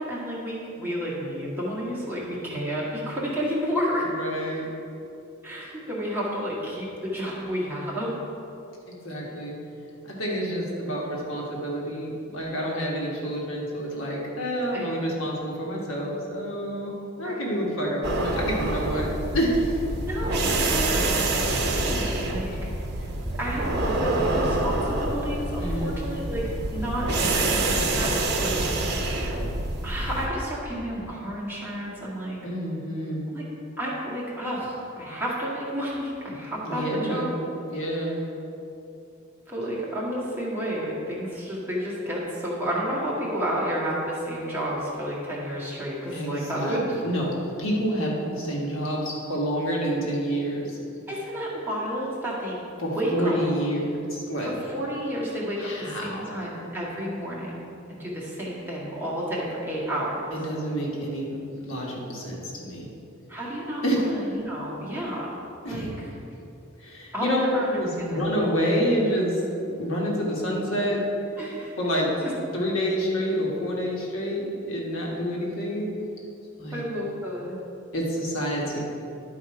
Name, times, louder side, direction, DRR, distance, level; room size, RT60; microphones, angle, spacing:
voice 1, 0.0-4.0 5.4-8.1 14.7-15.0 17.2-17.7 20.0-22.7 22.9-26.4 26.7-29.4 29.8-32.4 33.3-33.4 33.8-37.3 37.9-38.2 39.5-47.0 51.1-52.6 52.9-53.4 54.4-60.2 63.3-65.3 65.7-66.1 67.1-68.2 71.4-71.7 72.2-72.3 76.7-77.6, equal, 10° right, -7 dB, 1.8 m, -31 dB
voice 2, 4.2-4.7 8.9-9.5 10.0-19.7 25.6-26.0 32.4-33.3 36.6-37.3 37.7-38.2 46.1-50.8 52.8-54.5 55.6-56.4 60.3-62.9 63.8-64.0 65.6-65.9 66.8-67.4 67.8-71.0 71.8-72.1 72.5-75.9 76.6-76.8 77.9-78.8, equal, 70° left, -3 dB, 1.6 m, -28 dB
sound 1, 18.0-30.3, right 2 dB, 55° right, 0.9 m, -26 dB
11.0 x 4.3 x 4.8 m, 2.8 s
head